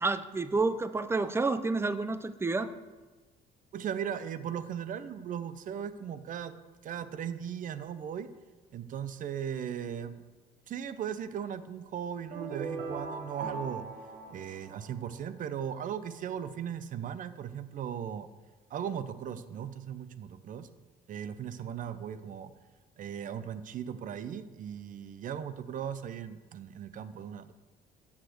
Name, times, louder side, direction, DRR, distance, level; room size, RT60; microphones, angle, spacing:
voice 1, 0.0-2.7, right 3 dB, 15° right, 13 dB, 0.5 m, -29 dB
voice 2, 3.7-6.6 6.8-8.3 8.7-10.2 10.7-13.9 14.3-18.3 18.7-20.7 21.1-22.5 23.0-27.5, right 8 dB, 50° right, 13 dB, 0.7 m, -37 dB
sound 1, 12.3-15.4, right 4 dB, 70° right, 1.7 m, -39 dB
7.3 x 6.4 x 7.8 m, 1.3 s
cardioid pair, 110°, 17 cm